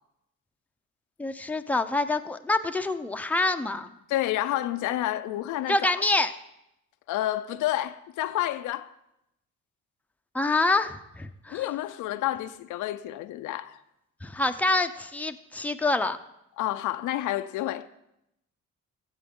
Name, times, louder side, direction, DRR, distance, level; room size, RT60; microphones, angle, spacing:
voice 1, 1.2-3.9 5.7-6.3 10.3-11.6 14.2-16.2, left 2 dB, 5° left, 0.6 m, -26 dB
voice 2, 4.1-5.9 7.1-8.9 11.5-13.8 16.6-17.9, left 14 dB, 85° left, 0.5 m, -29 dB
16.0 x 7.5 x 3.7 m
cardioid pair, 90°, 30 cm